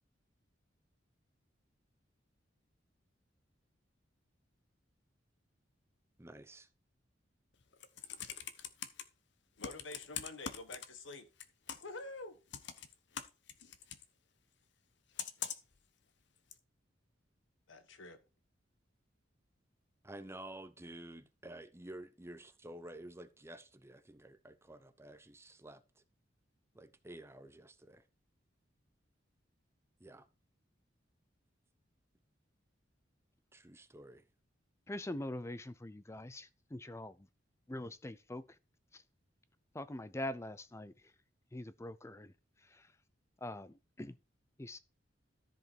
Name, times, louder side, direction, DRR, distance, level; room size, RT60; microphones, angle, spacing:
voice 1, 6.2-6.7 20.0-26.0 26.7-28.0 30.0-30.3 33.5-34.3, right 1 dB, 15° right, 0.8 m, -51 dB
Computer keyboard, 7.6-9.0 9.6-11.1 11.4-12.0 12.5-14.0 15.2-15.8 16.5-16.6, left 8 dB, 65° left, 0.9 m, -43 dB
voice 2, 9.6-11.3 11.8-12.4 17.7-18.2, left 2 dB, 85° left, 1.5 m, -47 dB
voice 3, 34.9-37.3 37.7-38.5 38.9-39.0 39.7-40.9 41.5-42.3 42.7-42.9 43.4-44.2 44.6-44.8, left 1 dB, 15° left, 0.5 m, -43 dB
13.5 x 5.2 x 4.6 m
head